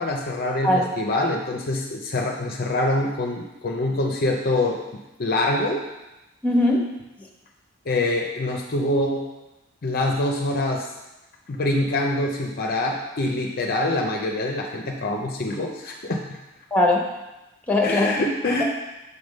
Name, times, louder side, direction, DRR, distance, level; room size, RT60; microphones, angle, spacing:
voice 1, 0.0-4.8 5.2-5.8 7.9-9.2 9.8-10.9 11.5-16.2 17.8-18.6, left 2 dB, 45° left, 1 dB, 0.6 m, -25 dB
voice 2, 6.4-6.8 16.7-17.0 17.7-18.2, left 1 dB, 10° left, -1 dB, 1.0 m, -19 dB
6.7 x 3.5 x 5.2 m, 0.99 s
head